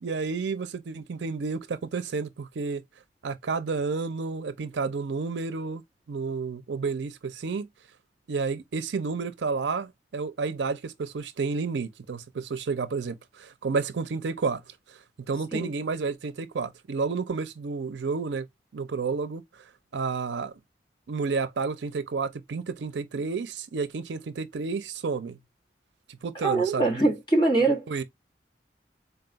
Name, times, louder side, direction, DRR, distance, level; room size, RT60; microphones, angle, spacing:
voice 1, 0.0-2.8 3.2-5.8 6.1-7.7 8.3-14.6 15.3-18.5 18.7-19.4 19.9-20.5 21.1-25.4 26.2-27.0 27.9-28.0, right 4 dB, 85° right, 0.5 m, -30 dB
voice 2, 26.4-27.9, right 2 dB, 25° left, 1.3 m, -23 dB
4.0 x 2.3 x 3.9 m
head